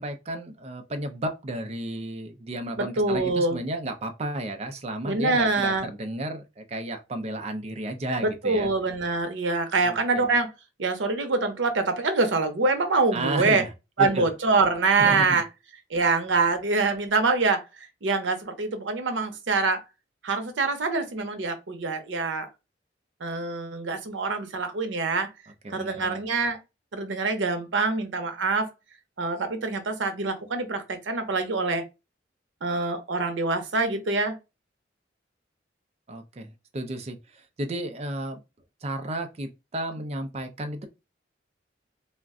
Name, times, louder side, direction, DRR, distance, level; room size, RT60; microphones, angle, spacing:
voice 1, 0.0-8.7 9.8-10.3 13.1-13.7 14.0-14.3 15.0-15.3 25.6-26.2 36.1-38.4 38.8-40.9, right 1 dB, 35° right, 0.4 m, -33 dB
voice 2, 2.8-3.6 5.0-5.9 8.2-10.5 10.8-13.6 14.0-15.4 15.9-17.6 18.0-19.8 20.2-22.5 23.2-25.3 25.7-26.6 26.9-28.7 29.2-31.8 32.6-34.3, right 3 dB, 90° right, 0.7 m, -25 dB
2.4 x 2.1 x 3.5 m
head